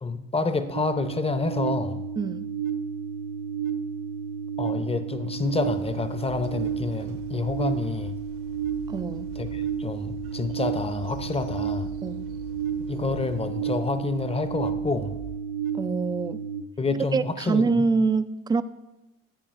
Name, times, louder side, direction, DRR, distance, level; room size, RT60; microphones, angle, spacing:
voice 1, 0.0-2.0 4.6-8.1 9.4-11.9 12.9-15.2 16.8-17.9, left 3 dB, 15° left, 10 dB, 0.7 m, -28 dB
sound 1, 0.7-16.6, right 7 dB, 85° right, 0.7 m, -32 dB
voice 2, 2.2-2.5 8.9-9.3 12.0-12.3 15.7-16.5 17.1-18.6, right 4 dB, 15° right, 14 dB, 0.3 m, -25 dB
Train, 5.4-15.4, right 6 dB, 65° right, 1.0 m, -46 dB
10.5 x 8.7 x 2.5 m, 0.98 s
hypercardioid pair, 60°, 34 cm